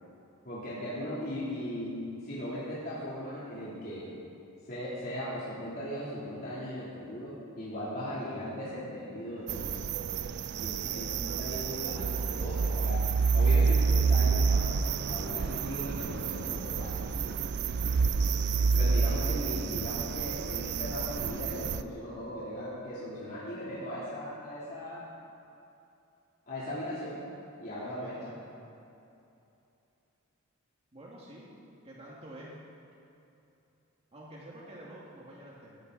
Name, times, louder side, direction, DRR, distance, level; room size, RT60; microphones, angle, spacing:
voice 1, 0.4-4.1 4.7-9.8 10.6-13.0 13.3-17.3 18.7-25.0 26.5-27.2 27.6-28.3, equal, 45° left, -10 dB, 3.3 m, -38 dB
sound 1, 9.5-21.8, right 5 dB, 55° right, 0.4 m, -28 dB
voice 2, 27.8-28.5 30.9-31.5 31.8-32.5 34.1-35.8, right 1 dB, 30° right, -5 dB, 2.1 m, -48 dB
21.0 x 13.0 x 4.1 m, 2.8 s
head